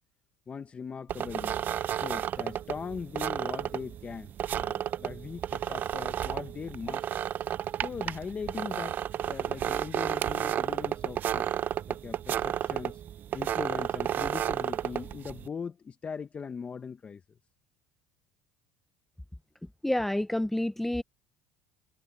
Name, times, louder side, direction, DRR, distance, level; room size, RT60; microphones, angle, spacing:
voice 1, 0.5-1.6 2.0-7.1 7.8-11.5 11.9-13.0 13.3-17.2, left 6 dB, 30° left, 1.1 m, -40 dB
sound 1, 1.1-15.5, right 10 dB, 45° right, 0.4 m, -32 dB
voice 2, 19.8-21.0, left 1 dB, 5° left, 0.6 m, -28 dB
supercardioid pair, 100°, 4 cm